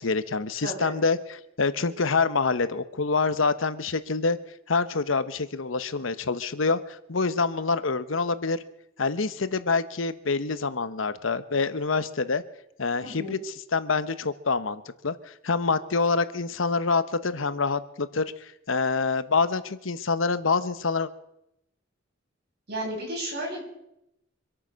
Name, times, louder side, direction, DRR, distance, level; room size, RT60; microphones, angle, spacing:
voice 1, 0.0-4.4 4.7-8.6 9.0-12.4 12.8-21.1, left 4 dB, 80° left, 13 dB, 1.0 m, -26 dB
voice 2, 0.6-0.9 13.0-13.4 22.7-23.6, right 1 dB, 55° right, -2 dB, 7.7 m, -33 dB
25.5 x 8.9 x 6.3 m, 0.84 s
head